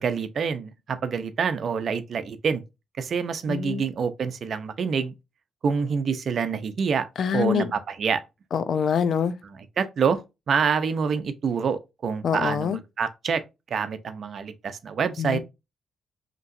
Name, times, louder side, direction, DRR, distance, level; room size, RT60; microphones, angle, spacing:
voice 1, 0.0-2.6 3.0-5.1 5.6-7.1 7.3-8.2 9.8-10.2 10.5-13.4 13.7-15.4, right 6 dB, 60° right, 0.7 m, -26 dB
voice 2, 3.5-3.8 7.2-7.7 8.5-9.3 12.2-12.8 15.2-15.4, left 7 dB, 65° left, 0.5 m, -25 dB
5.3 x 3.0 x 2.6 m
cardioid pair, 80°, 0 cm